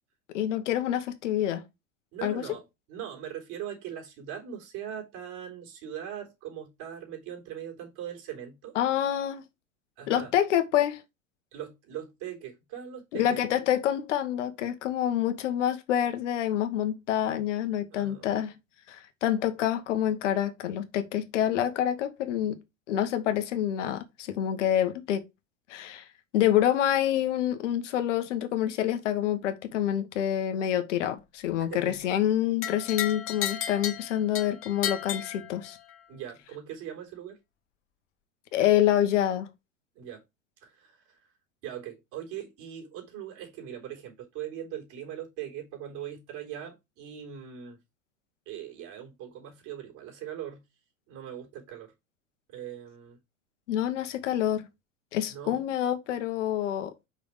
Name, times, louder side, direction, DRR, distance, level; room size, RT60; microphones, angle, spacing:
voice 1, 0.3-1.6 2.2-2.4 8.7-9.4 10.1-11.0 13.1-18.5 18.9-22.6 22.9-25.2 25.7-26.1 26.3-35.8 38.5-39.5 53.7-54.7 55.1-56.9, left 11 dB, 65° left, 1.4 m, -27 dB
voice 2, 2.1-8.8 10.0-10.3 11.5-13.4 17.9-18.4 31.7-32.0 36.1-37.4 39.9-40.2 40.6-41.2 41.6-47.8 48.5-50.6 51.1-51.9 52.5-53.2 55.3-55.7, right 10 dB, 50° right, 3.7 m, -40 dB
sound 1, 32.6-36.0, left 10 dB, 35° left, 1.4 m, -34 dB
5.7 x 5.2 x 4.9 m
hypercardioid pair, 90°, 39 cm